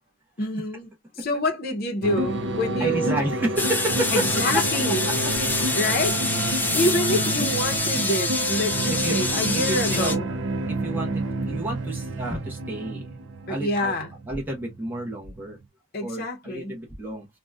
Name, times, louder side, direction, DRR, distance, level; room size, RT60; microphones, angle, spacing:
voice 1, 0.4-0.9 1.2-3.2 4.1-5.1 5.7-6.2 6.7-10.3 13.5-14.1 15.9-16.7, left 1 dB, 45° left, 0.7 m, -27 dB
sound 1, 2.0-15.7, right 2 dB, 60° right, 0.5 m, -29 dB
voice 2, 2.8-4.3 4.5-4.6 5.2-5.3 6.6-6.7 8.9-10.2 10.7-13.1 13.5-13.9 14.3-15.6 16.0-17.3, right 1 dB, 10° right, 0.8 m, -30 dB
sound 2, 3.6-10.2, left 3 dB, 10° left, 0.4 m, -26 dB
3.8 x 2.2 x 2.3 m
head